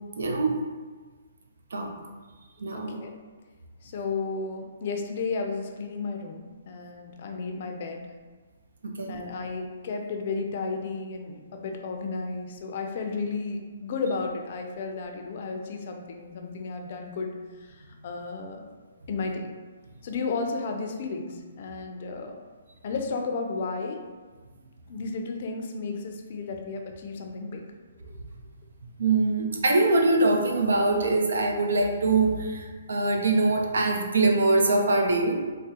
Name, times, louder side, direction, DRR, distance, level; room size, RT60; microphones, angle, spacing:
voice 1, 0.2-0.6 1.7-1.9 2.6-3.0 8.8-9.2 29.0-35.4, right 2 dB, 80° right, 2 dB, 0.5 m, -23 dB
voice 2, 2.7-3.1 3.8-8.1 9.1-17.3 17.6-18.7 19.1-19.5 20.0-22.4 22.8-24.0 24.9-27.6, left 4 dB, 50° left, 3 dB, 0.4 m, -33 dB
3.6 x 2.0 x 2.7 m, 1.4 s
hypercardioid pair, 145°, 0 cm